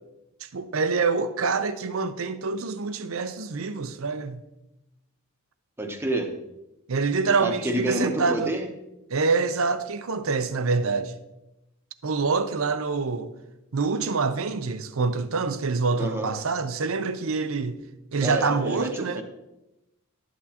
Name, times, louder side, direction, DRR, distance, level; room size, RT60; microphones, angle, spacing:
voice 1, 0.4-4.4 6.9-8.5 9.1-11.1 12.0-13.3 13.7-17.8 18.1-19.2, right 4 dB, 65° right, 0.6 m, -26 dB
voice 2, 5.8-6.3 7.4-8.7 16.0-16.3 18.2-19.2, right 1 dB, 10° right, 0.9 m, -28 dB
12.0 x 8.5 x 2.9 m
head